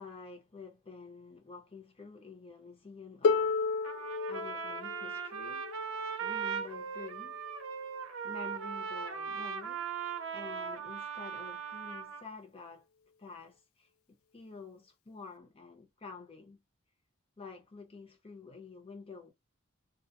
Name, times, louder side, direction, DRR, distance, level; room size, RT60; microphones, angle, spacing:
voice 1, 0.0-3.6 4.3-5.7 6.2-7.4 8.2-9.9 10.3-12.9 13.2-16.6 17.4-19.3, left 4 dB, 30° left, 0.8 m, -49 dB
Harp, 3.2-9.0 10.1-10.2, left 4 dB, 80° left, 0.3 m, -35 dB
Trumpet, 3.8-12.3, right 6 dB, 70° right, 0.5 m, -39 dB
2.4 x 2.1 x 2.7 m
head